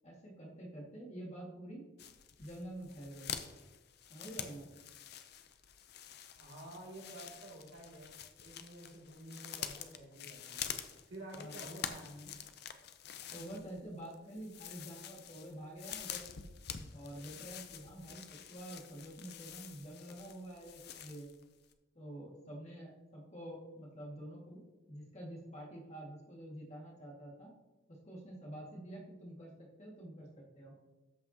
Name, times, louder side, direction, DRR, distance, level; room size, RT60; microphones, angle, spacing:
voice 1, 0.0-1.9 2.4-3.3 4.1-4.7 11.4-11.8 13.3-16.3 16.9-21.3 21.9-24.6 24.9-27.5 28.0-30.7, right 1 dB, 35° left, -3 dB, 2.0 m, -48 dB
Soft walking through very dry leaves and twigs, 2.0-21.4 21.7-21.8, left 9 dB, 55° left, 0.5 m, -47 dB
voice 2, 6.4-8.1 8.4-10.7 11.1-12.3, right 1 dB, 80° right, -3 dB, 2.5 m, -50 dB
13.0 x 5.9 x 2.9 m, 1.1 s
head